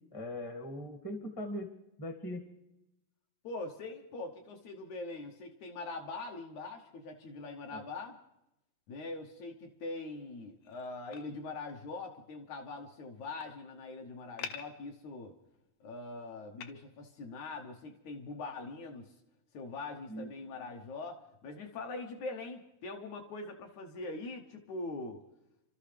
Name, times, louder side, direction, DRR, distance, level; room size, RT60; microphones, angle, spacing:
voice 1, 0.1-1.7 2.0-2.4 7.7-7.8 20.1-20.3, left 1 dB, 20° left, 3 dB, 0.6 m, -40 dB
voice 2, 3.4-8.2 8.9-15.4 15.8-19.1 19.5-25.2, left 3 dB, 70° left, 3 dB, 2.0 m, -42 dB
sound 1, 10.6-11.3 13.1-13.5 14.1-14.7 15.5-15.8 16.6-16.7, left 8 dB, 90° left, 1.5 m, -44 dB
29.0 x 13.0 x 3.3 m, 0.88 s
omnidirectional pair, 4.1 m